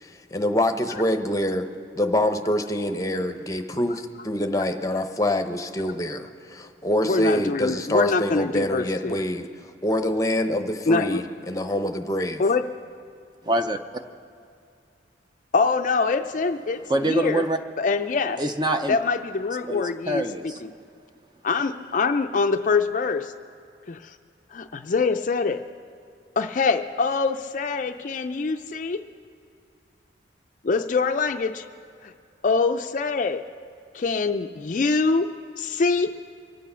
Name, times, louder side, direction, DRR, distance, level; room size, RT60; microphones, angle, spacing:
voice 1, 0.0-1.7 1.9-9.5 9.8-12.4, left 1 dB, 15° left, 6 dB, 0.7 m, -25 dB
voice 2, 7.0-9.2 10.9-11.2 12.4-12.6 15.5-17.4 17.8-18.4 18.9-20.7 21.4-23.3 23.9-24.2 24.5-25.6 26.4-29.0 30.6-31.7 32.0-32.1 32.4-33.4 33.9-35.3 35.6-36.1, left 4 dB, 45° left, 8 dB, 0.4 m, -24 dB
voice 3, 13.4-13.8 16.9-17.6 18.4-19.0 19.7-20.6, right 1 dB, 25° right, 7 dB, 0.5 m, -25 dB
24.5 x 8.4 x 5.5 m, 2.4 s
head